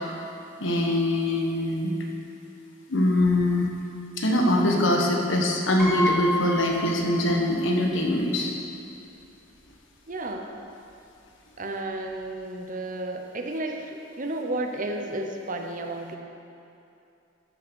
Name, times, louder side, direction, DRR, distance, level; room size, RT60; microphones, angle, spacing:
voice 1, 0.6-1.9 2.9-3.7 4.2-8.5, left 1 dB, 65° left, 0 dB, 1.5 m, -23 dB
Piano, 5.8-7.6 7.9-8.0 9.2-9.3 9.6-9.8, left 2 dB, ahead, 2.4 m, -30 dB
voice 2, 10.1-10.5 11.6-16.2, right 2 dB, 40° right, 3 dB, 0.8 m, -32 dB
13.5 x 5.8 x 6.3 m, 2.7 s
head